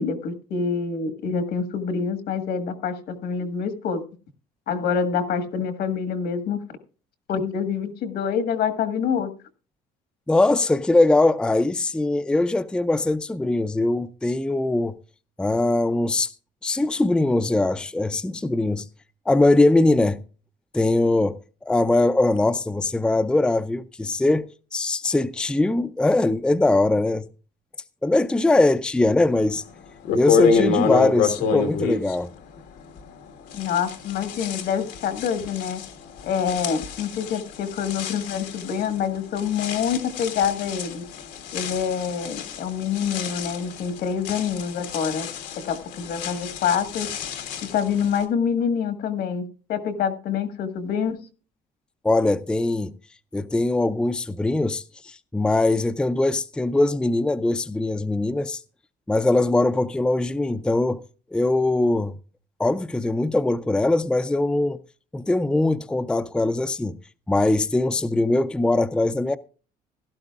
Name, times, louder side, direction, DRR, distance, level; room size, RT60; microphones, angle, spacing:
voice 1, 0.0-4.0 4.7-6.6 7.3-9.3 33.5-35.8 36.2-41.0 41.5-45.3 45.6-47.1 47.7-51.2, left 7 dB, 75° left, 1.6 m, -26 dB
voice 2, 10.3-15.0 15.4-16.3 16.6-18.9 19.3-20.2 20.7-21.4 21.7-27.3 28.0-29.6 30.1-32.3 52.0-52.9 53.3-58.6 59.1-61.0 61.3-62.2 62.6-64.8 65.1-67.0 67.3-69.4, left 2 dB, 5° left, 0.4 m, -21 dB
sound 1, 29.5-29.6 30.0-33.2 33.5-48.2, left 6 dB, 90° left, 1.6 m, -28 dB
16.0 x 12.0 x 2.4 m
cardioid pair, 110°, 17 cm